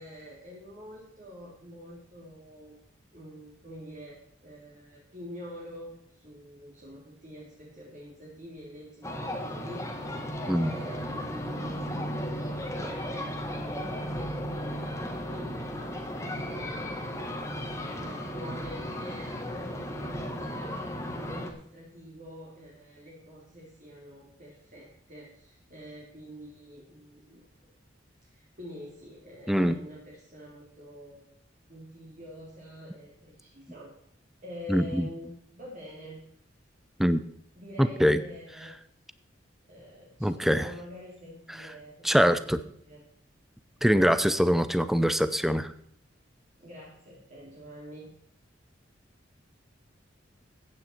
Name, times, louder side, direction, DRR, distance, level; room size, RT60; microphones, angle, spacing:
voice 1, 0.0-2.8 3.1-11.8 12.8-20.8 21.1-27.7 28.2-31.3 31.7-33.9 34.4-36.2 37.6-38.7 39.7-43.0 46.6-48.1, equal, 40° right, -4 dB, 3.0 m, -47 dB
sound 1, 9.0-21.5, equal, 15° left, 1.6 m, -35 dB
voice 2, 29.5-29.8 34.7-35.1 37.0-37.2 37.8-38.2 40.2-40.7 42.0-42.6 43.8-45.7, equal, ahead, 12 dB, 0.6 m, -23 dB
15.0 x 8.9 x 4.5 m, 0.67 s
head